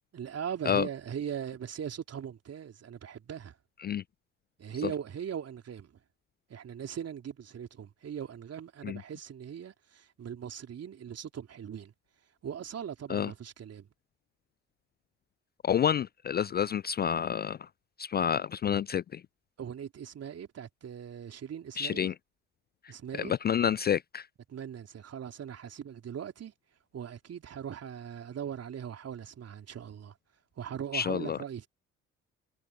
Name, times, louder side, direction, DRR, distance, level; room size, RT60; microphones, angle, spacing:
voice 1, 0.1-3.6 4.6-6.0 6.5-11.9 12.4-13.9 19.6-22.1 22.9-23.3 24.5-26.5 26.9-30.2 30.6-31.7, right 8 dB, 40° right, 3.6 m, -40 dB
voice 2, 15.6-17.6 18.0-19.2 21.8-22.1 23.4-24.3 30.9-31.4, left 8 dB, 25° left, 0.5 m, -28 dB
figure-of-eight pair, 50°, 37 cm